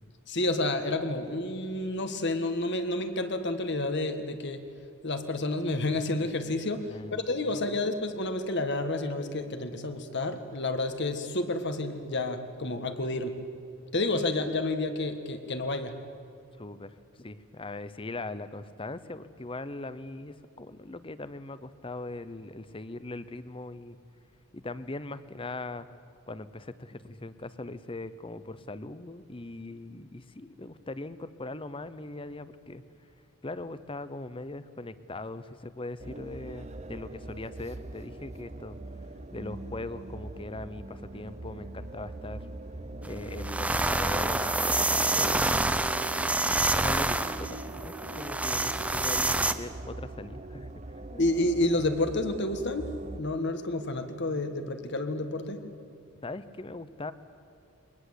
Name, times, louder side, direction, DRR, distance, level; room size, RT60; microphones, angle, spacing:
voice 1, 0.3-4.6 5.0-13.3 13.9-15.9 51.2-52.9 53.2-55.6, left 2 dB, 55° left, 8 dB, 1.6 m, -30 dB
voice 2, 6.9-7.7 16.6-24.0 24.5-25.9 26.3-32.8 33.4-38.8 39.3-42.4 43.0-45.8 46.6-50.7 51.0-51.3 56.2-57.1, left 2 dB, 25° left, 14 dB, 0.8 m, -40 dB
sound 1, 36.0-53.2, right 2 dB, 30° right, 0.8 m, -41 dB
sound 2, 43.0-43.1 43.4-49.5, right 2 dB, 5° right, 0.6 m, -27 dB
23.5 x 19.5 x 8.2 m, 2.4 s
head